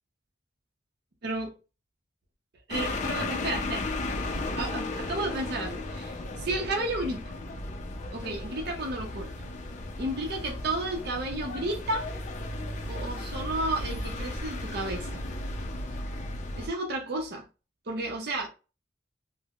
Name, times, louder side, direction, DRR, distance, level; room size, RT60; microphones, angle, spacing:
voice 1, 1.2-1.6 2.7-3.9 4.5-7.3 8.1-9.5 10.0-12.0 12.9-15.2 16.6-17.5 17.9-18.5, right 2 dB, 60° right, 0.6 m, -32 dB
sound 1, 2.7-16.7, left 2 dB, 40° left, 0.5 m, -35 dB
3.5 x 2.0 x 2.3 m
head